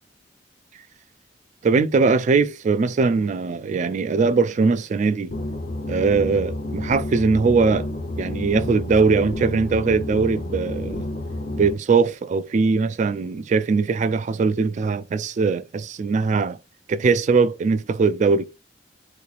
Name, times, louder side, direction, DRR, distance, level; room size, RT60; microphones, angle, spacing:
voice 1, 1.6-5.3 5.9-7.9 8.2-11.0 11.5-16.6 16.9-18.5, right 4 dB, 40° right, 0.3 m, -21 dB
sound 1, 5.3-11.7, left 1 dB, 50° left, 0.7 m, -30 dB
3.8 x 3.0 x 2.4 m
head